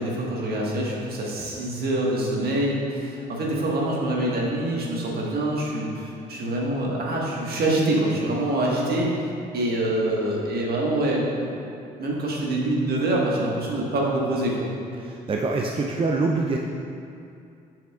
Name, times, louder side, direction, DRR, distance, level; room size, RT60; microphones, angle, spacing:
voice 1, 0.0-9.1 9.5-11.6 12.0-14.7, right 1 dB, 50° right, -3 dB, 1.5 m, -25 dB
voice 2, 15.0-16.6, right 3 dB, 25° right, 1 dB, 0.5 m, -25 dB
7.1 x 6.7 x 2.4 m, 2.5 s
hypercardioid pair, 55°, 20 cm